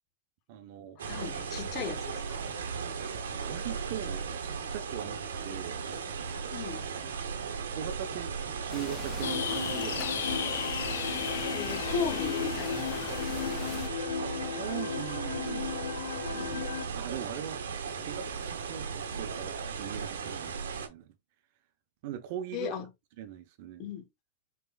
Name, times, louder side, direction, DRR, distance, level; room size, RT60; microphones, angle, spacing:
voice 1, 0.5-1.6 3.5-5.8 7.0-10.6 14.2-15.8 16.1-17.6 18.0-21.1 22.0-22.9 23.2-23.9, right 10 dB, 55° right, 0.8 m, -41 dB
sound 1, 1.0-20.9, right 6 dB, 85° right, 0.9 m, -36 dB
voice 2, 1.1-2.4 6.5-6.8 11.5-13.6 22.5-22.9 23.8-24.1, left 6 dB, 40° left, 1.1 m, -37 dB
sound 2, 8.7-13.9, left 7 dB, 25° left, 0.4 m, -43 dB
sound 3, 9.2-16.9, left 9 dB, 85° left, 0.4 m, -34 dB
4.3 x 3.3 x 2.3 m
hypercardioid pair, 125°, 0 cm